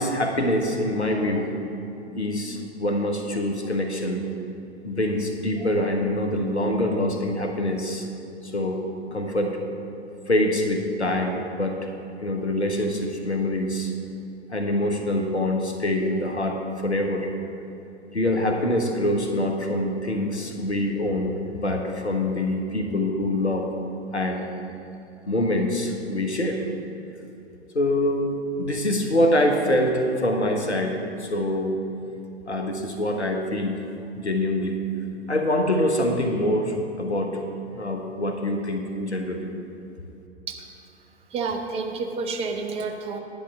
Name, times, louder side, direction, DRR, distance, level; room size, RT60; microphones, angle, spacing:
voice 1, 0.0-1.6 2.2-4.3 4.8-8.1 8.4-8.8 9.1-9.6 10.3-11.8 12.2-13.9 14.5-17.3 18.1-23.7 24.1-24.5 25.3-26.6 27.7-31.8 32.5-33.8 34.2-34.8 35.3-37.4 37.7-39.5, left 1 dB, 90° left, 3 dB, 1.2 m, -25 dB
voice 2, 41.3-43.2, right 4 dB, 20° right, 4 dB, 0.6 m, -30 dB
10.5 x 10.0 x 3.6 m, 2.8 s
figure-of-eight pair, 105°, 33 cm